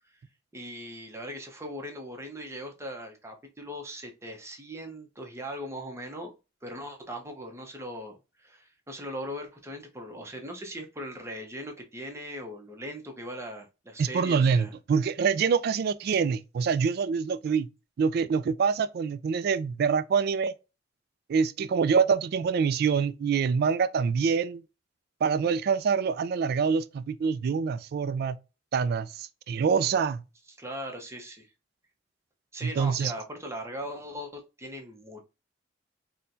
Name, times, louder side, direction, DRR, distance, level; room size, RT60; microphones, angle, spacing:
voice 1, 0.5-6.3 6.6-14.7 30.5-31.5 32.5-35.2, equal, 15° right, 0.7 m, -39 dB
voice 2, 14.0-17.7 18.0-20.5 21.3-24.6 25.2-28.4 28.7-30.2 32.6-33.1, right 6 dB, 55° right, 0.3 m, -25 dB
4.3 x 2.2 x 2.6 m
head